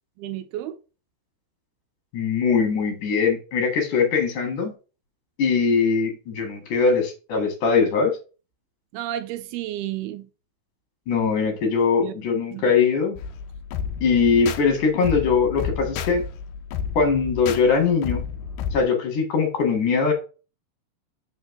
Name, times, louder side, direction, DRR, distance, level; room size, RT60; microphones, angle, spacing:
voice 1, 0.2-0.8 8.9-10.3 12.0-12.1 12.5-12.7, right 13 dB, 80° right, 2.4 m, -31 dB
voice 2, 2.1-4.7 5.4-8.1 11.1-13.2 14.0-16.2 16.9-18.2 18.7-20.1, left 5 dB, 55° left, 3.1 m, -21 dB
sound 1, 13.2-18.8, left 7 dB, 80° left, 1.9 m, -31 dB
5.8 x 4.6 x 5.8 m
omnidirectional pair, 4.6 m